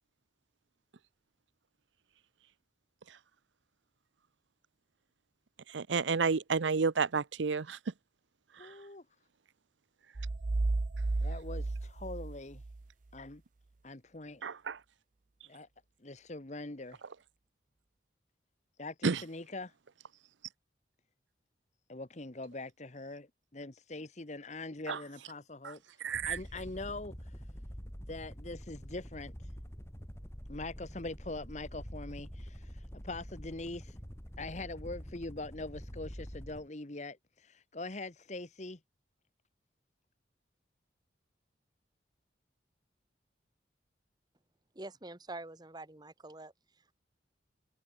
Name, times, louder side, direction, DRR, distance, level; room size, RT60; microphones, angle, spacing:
voice 1, 5.7-7.8 8.6-8.7 14.4-14.8 19.0-19.2 24.9-25.0 25.6-25.7 26.0-26.4, right 5 dB, 85° right, 0.7 m, -31 dB
voice 2, 8.6-9.0 11.2-12.6 13.1-13.4 13.8-14.4 15.5-15.7 16.0-17.0 18.8-19.7 21.9-25.8 26.3-27.3 28.1-29.3 30.5-34.0 34.4-38.8, left 2 dB, 40° left, 1.3 m, -43 dB
sound 1, 10.2-12.8, right 2 dB, 45° right, 0.6 m, -33 dB
sound 2, 26.0-36.7, equal, 15° left, 4.0 m, -46 dB
voice 3, 44.7-46.5, right 2 dB, 20° right, 1.2 m, -45 dB
head